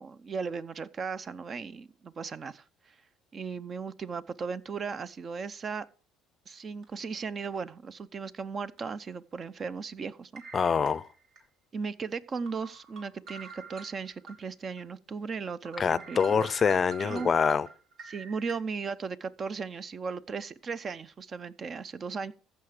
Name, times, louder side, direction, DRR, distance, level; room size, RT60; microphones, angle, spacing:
voice 1, 0.0-2.9 3.3-5.9 6.5-10.4 11.7-16.5 17.0-17.3 18.1-22.3, right 5 dB, 40° right, 0.6 m, -36 dB
sound 1, 6.8-7.0 7.4-7.6 8.8-8.9 10.4-11.4 11.9-12.0 12.5-14.4 14.8-14.9 15.3-15.4 15.7-18.5, right 5 dB, 65° right, 3.1 m, -46 dB
voice 2, 10.5-11.1 15.8-17.7, left 6 dB, 35° left, 0.5 m, -25 dB
14.5 x 5.7 x 4.9 m
supercardioid pair, 90°, 0 cm